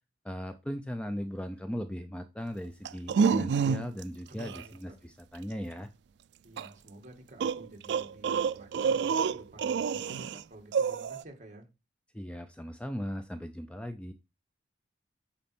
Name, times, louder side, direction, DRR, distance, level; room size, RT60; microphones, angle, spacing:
voice 1, 0.2-5.9 12.1-14.1, equal, 5° left, 0.5 m, -38 dB
sound 1, 2.8-4.0 4.4-4.6 6.6-6.7 7.4-10.4 10.7-11.2, right 6 dB, 65° right, 0.3 m, -28 dB
voice 2, 4.3-5.0 6.4-11.7, right 1 dB, 40° right, 1.8 m, -51 dB
8.7 x 4.2 x 4.3 m
head